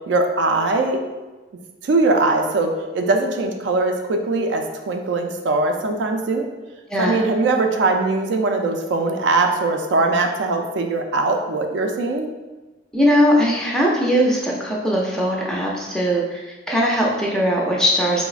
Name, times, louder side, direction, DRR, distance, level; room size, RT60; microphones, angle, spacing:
voice 1, 0.1-1.0 1.8-6.5 7.0-12.3, right 3 dB, 75° right, 4 dB, 0.3 m, -21 dB
voice 2, 6.9-7.2 12.9-18.2, equal, 5° left, -3 dB, 0.3 m, -20 dB
3.8 x 2.0 x 2.3 m, 1.2 s
head